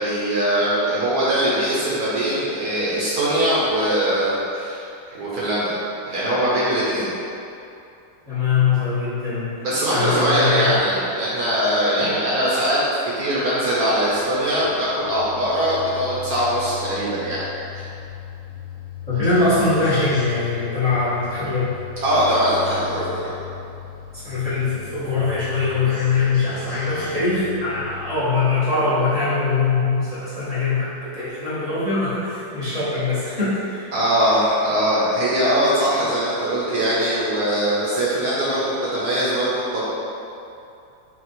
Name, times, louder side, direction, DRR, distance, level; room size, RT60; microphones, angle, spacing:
voice 1, 0.0-4.8 5.1-5.7 6.1-7.1 9.6-12.8 13.0-17.4 17.7-17.8 22.0-23.3 33.9-39.8, right 1 dB, 60° right, -8 dB, 1.2 m, -21 dB
voice 2, 8.3-9.5 9.9-10.8 12.0-12.1 19.1-21.8 24.1-33.9, left 4 dB, 25° left, -13 dB, 1.0 m, -22 dB
sound 1, 14.0-28.2, left 7 dB, 85° left, 1.4 m, -38 dB
4.3 x 2.4 x 4.2 m, 2.7 s
omnidirectional pair, 1.9 m